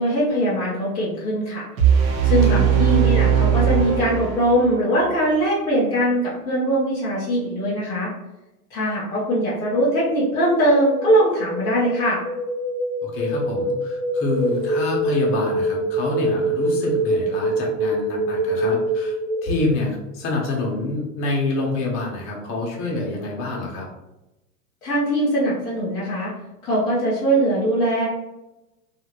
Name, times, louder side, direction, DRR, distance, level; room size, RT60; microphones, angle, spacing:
voice 1, 0.0-1.7 2.2-8.1 8.7-12.2 24.8-26.3 26.6-28.1, right 1 dB, 10° left, -11 dB, 0.3 m, -21 dB
sound 1, 1.8-4.8, right 8 dB, 60° right, 0.9 m, -19 dB
sound 2, 10.0-19.8, right 1 dB, 20° right, 0.7 m, -25 dB
voice 2, 13.0-19.2 19.4-23.9, left 2 dB, 25° left, -1 dB, 0.7 m, -27 dB
2.8 x 2.4 x 2.9 m, 0.96 s
hypercardioid pair, 125°, 48 cm